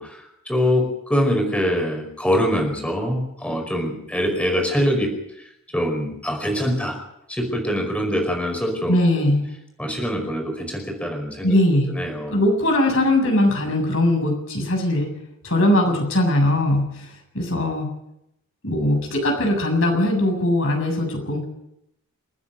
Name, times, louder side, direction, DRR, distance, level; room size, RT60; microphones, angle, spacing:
voice 1, 0.0-5.5 5.7-7.0 7.3-9.0 9.8-11.6 11.9-12.4, equal, 5° left, 3 dB, 5.1 m, -24 dB
voice 2, 8.9-9.4 11.4-11.9 12.3-15.1 15.4-17.1 17.3-17.9 18.6-21.4, left 1 dB, 60° left, 3 dB, 7.3 m, -20 dB
29.0 x 10.0 x 9.1 m, 0.81 s
head